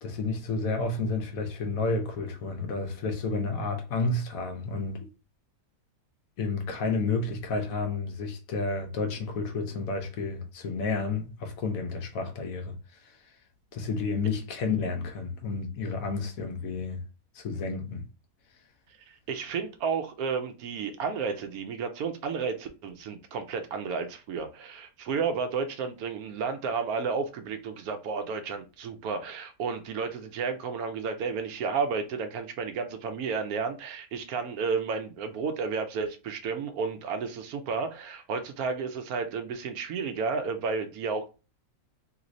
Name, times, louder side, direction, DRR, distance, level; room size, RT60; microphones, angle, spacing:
voice 1, 0.0-5.1 6.4-12.7 13.0-13.2 13.7-17.0 17.3-18.0, left 3 dB, 75° left, 1.2 m, -31 dB
voice 2, 19.1-41.3, right 5 dB, 85° right, 1.1 m, -32 dB
3.2 x 3.0 x 2.6 m
omnidirectional pair, 1.5 m